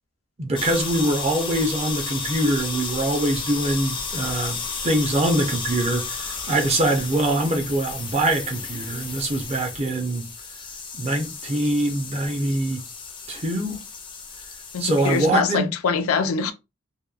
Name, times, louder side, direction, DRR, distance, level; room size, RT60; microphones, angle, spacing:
voice 1, 0.4-4.6 4.8-10.3 10.9-12.8 13.3-13.8 14.8-15.7, right 1 dB, 30° right, 0.5 m, -23 dB
sound 1, 0.6-15.3, left 5 dB, 25° left, 0.4 m, -33 dB
voice 2, 14.7-16.5, left 5 dB, 90° left, 0.4 m, -23 dB
2.8 x 2.2 x 2.3 m
head